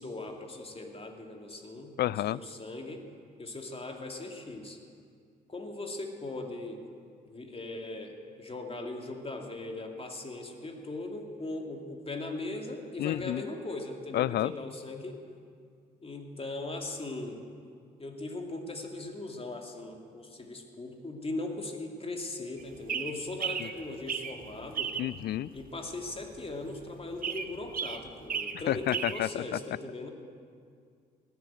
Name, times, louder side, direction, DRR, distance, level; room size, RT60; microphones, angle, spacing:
voice 1, 0.0-2.0 2.3-3.0 3.4-4.8 5.5-6.8 7.2-15.2 16.0-17.4 18.0-24.9 25.5-30.1, left 2 dB, 30° left, 2 dB, 2.7 m, -39 dB
voice 2, 2.0-2.4 13.0-13.4 14.1-14.5 23.6-23.7 25.0-25.5 28.7-29.4, left 13 dB, 50° left, 22 dB, 0.4 m, -29 dB
sound 1, 22.6-29.2, right 7 dB, 45° right, 1.1 m, -36 dB
18.0 x 8.0 x 9.1 m, 2.2 s
hypercardioid pair, 45°, 21 cm